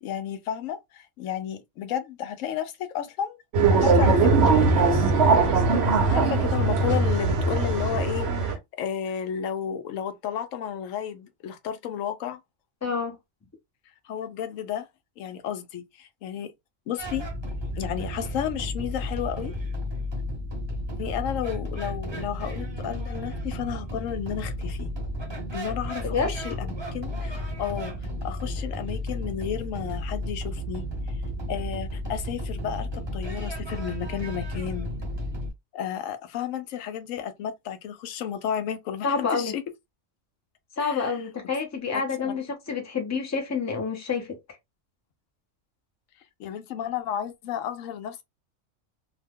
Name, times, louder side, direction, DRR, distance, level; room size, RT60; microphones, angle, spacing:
voice 1, 0.0-3.4 3.7-5.1 5.4-5.6 6.1-12.4 14.0-14.9 15.2-16.5 16.9-17.3 17.7-19.5 21.0-24.9 25.5-27.9 28.2-30.9 31.5-34.9 35.7-39.6 40.8-41.2 41.9-42.4 46.4-48.2, left 9 dB, 90° left, 1.0 m, -32 dB
sound 1, 3.5-8.6, right 4 dB, 60° right, 0.9 m, -20 dB
voice 2, 12.8-13.2 26.1-26.3 39.0-39.5 40.8-44.4, left 5 dB, 15° left, 0.6 m, -28 dB
sound 2, 17.0-35.5, left 1 dB, 25° right, 0.8 m, -33 dB
2.7 x 2.1 x 3.5 m
omnidirectional pair, 1.3 m